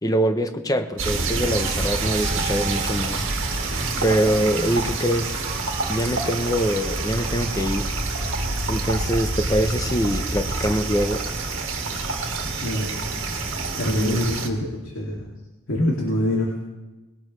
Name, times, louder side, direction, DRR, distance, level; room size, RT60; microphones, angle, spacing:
voice 1, 0.0-3.3 4.0-5.4 5.9-7.9 8.7-11.2 13.9-14.2, equal, 15° left, 7 dB, 0.8 m, -24 dB
sound 1, 1.0-14.5, right 3 dB, 65° right, 1.8 m, -27 dB
sound 2, 1.5-8.7, right 4 dB, 35° right, 2.4 m, -38 dB
voice 2, 13.7-15.2 15.7-16.5, left 1 dB, 75° left, -3 dB, 2.5 m, -24 dB
20.5 x 17.5 x 3.2 m, 1.1 s
head